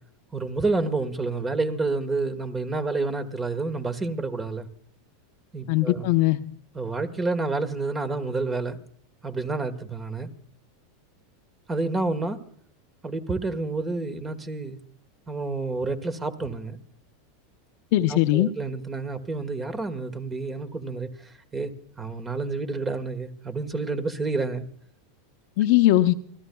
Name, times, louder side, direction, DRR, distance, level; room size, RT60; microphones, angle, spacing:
voice 1, 0.3-4.7 5.5-6.1 6.7-8.8 9.2-10.3 11.7-12.4 13.0-14.8 15.3-16.8 18.1-21.7 22.0-24.7, right 3 dB, 20° right, 12 dB, 1.4 m, -29 dB
voice 2, 5.7-6.4 17.9-18.5 25.6-26.1, left 15 dB, 65° left, 9 dB, 0.7 m, -20 dB
29.0 x 13.5 x 2.3 m, 0.62 s
hypercardioid pair, 110°, 0 cm